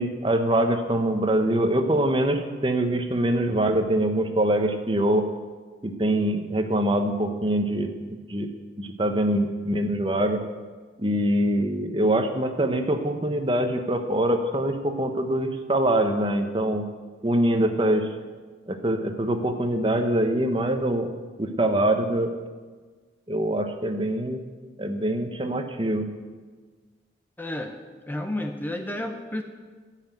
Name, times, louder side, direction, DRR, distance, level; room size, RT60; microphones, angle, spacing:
voice 1, 0.0-5.2 5.8-8.5 8.8-10.4 11.0-16.8 17.2-18.1 18.7-21.1 21.4-22.3 23.3-24.4 24.8-26.1, right 1 dB, 25° right, 6 dB, 0.9 m, -24 dB
voice 2, 27.4-27.7 28.1-29.4, left 1 dB, 10° left, 5 dB, 0.6 m, -31 dB
13.5 x 5.9 x 9.0 m, 1.4 s
head